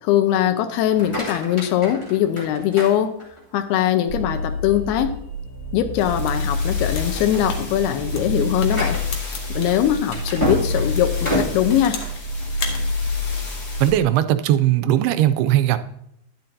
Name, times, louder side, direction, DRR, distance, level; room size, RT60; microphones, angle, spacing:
voice 1, 0.0-3.1 3.5-5.1 5.7-9.0 9.5-12.0, left 11 dB, 85° left, 9 dB, 2.7 m, -21 dB
sound 1, 0.9-3.6 4.1-4.6 5.0-5.1 5.6-5.7 6.4-6.7 7.0-12.9, left 1 dB, 20° left, 0.8 m, -30 dB
sound 2, 4.1-13.9, left 2 dB, 35° left, 1.6 m, -27 dB
sound 3, 6.2-10.5 10.9-12.2 12.5-12.8, left 5 dB, 65° left, 1.9 m, -35 dB
voice 2, 13.8-15.8, right 12 dB, 85° right, 10 dB, 2.6 m, -18 dB
10.5 x 10.0 x 2.6 m, 0.77 s
omnidirectional pair, 4.5 m